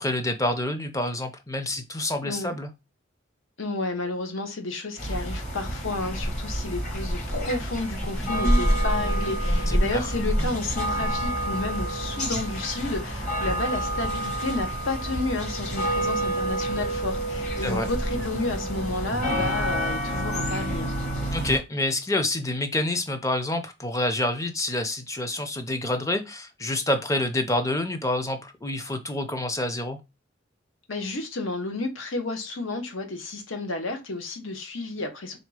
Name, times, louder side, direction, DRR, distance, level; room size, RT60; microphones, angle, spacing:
voice 1, 0.0-2.7 9.7-10.0 17.6-17.9 21.3-30.0, left 1 dB, 15° left, 0.5 m, -27 dB
voice 2, 2.2-2.5 3.6-20.9 30.9-35.4, left 2 dB, 75° left, 1.0 m, -31 dB
sound 1, 5.0-21.6, right 1 dB, 35° left, 1.3 m, -27 dB
3.5 x 2.8 x 4.7 m
head